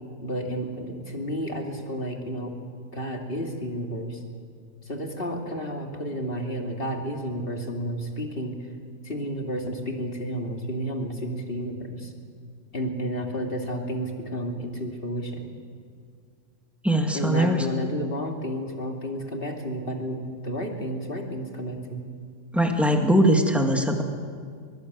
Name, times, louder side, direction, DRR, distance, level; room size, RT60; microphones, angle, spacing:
voice 1, 0.2-2.5 2.9-4.2 4.8-8.6 9.0-12.1 12.7-15.5 17.1-22.1, equal, 35° left, 2 dB, 2.8 m, -31 dB
voice 2, 16.8-17.7 22.5-24.0, right 1 dB, ahead, 2 dB, 2.0 m, -21 dB
23.0 x 22.5 x 8.2 m, 2.1 s
omnidirectional pair, 1.6 m